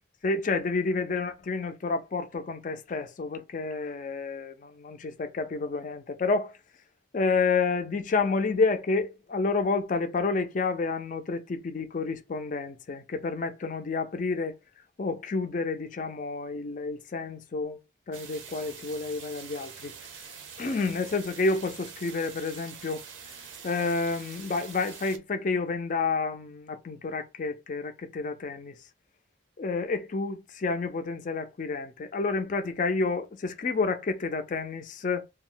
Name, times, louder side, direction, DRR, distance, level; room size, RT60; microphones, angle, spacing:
voice 1, 0.2-6.5 7.1-14.6 15.0-17.8 18.1-19.9 20.6-23.0 23.6-28.8 29.6-35.3, left 4 dB, 40° left, 0.4 m, -29 dB
sound 1, 18.1-25.2, right 6 dB, 80° right, 0.6 m, -45 dB
2.3 x 2.0 x 3.7 m
head